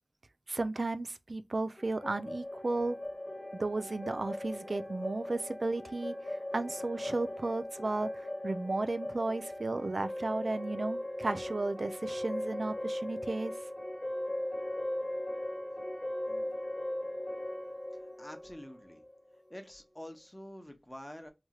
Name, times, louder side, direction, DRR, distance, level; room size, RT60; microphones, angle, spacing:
voice 1, 0.5-3.0 3.5-13.5, right 2 dB, 75° right, 0.3 m, -34 dB
sound 1, 1.8-19.5, left 1 dB, 45° left, 1.3 m, -39 dB
voice 2, 16.3-16.6 17.9-19.0 19.3-21.3, equal, 20° left, 0.8 m, -48 dB
3.0 x 2.9 x 2.3 m
wide cardioid pair, 50°, 0 cm